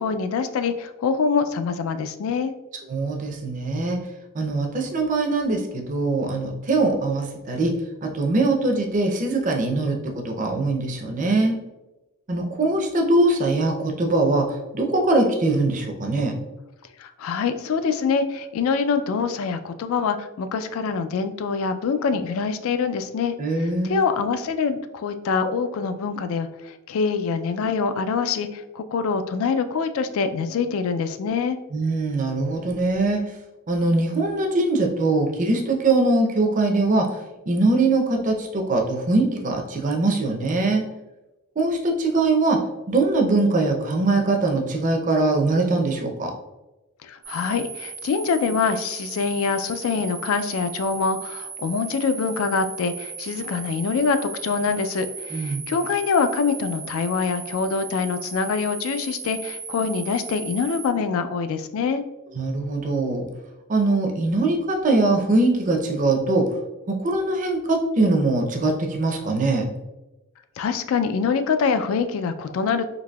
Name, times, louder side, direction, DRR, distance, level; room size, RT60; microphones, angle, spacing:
voice 1, 0.0-2.5 17.0-31.6 47.0-62.0 70.6-72.8, left 5 dB, 75° left, 10 dB, 0.3 m, -25 dB
voice 2, 2.9-4.0 4.3-11.6 12.3-16.3 23.4-24.0 31.7-33.2 33.7-37.1 37.5-40.8 41.6-42.6 42.9-46.3 55.3-55.7 62.3-63.3 63.7-66.5 66.9-69.7, right 2 dB, 35° right, 2 dB, 0.5 m, -22 dB
sound 1, 47.2-60.9, right 5 dB, 70° right, 0.8 m, -37 dB
3.9 x 2.7 x 2.2 m, 1.0 s
head